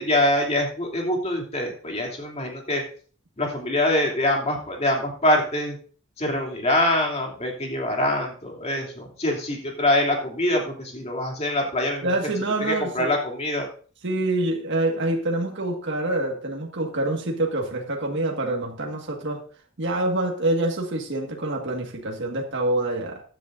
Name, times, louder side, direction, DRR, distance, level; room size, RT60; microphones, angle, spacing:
voice 1, 0.0-2.8 3.4-5.8 6.2-12.1 12.6-13.7, left 1 dB, 30° left, 0 dB, 2.8 m, -24 dB
voice 2, 12.0-13.1 14.0-19.4 19.8-23.2, right 2 dB, 60° right, 0 dB, 1.7 m, -26 dB
15.5 x 10.5 x 2.6 m, 0.41 s
head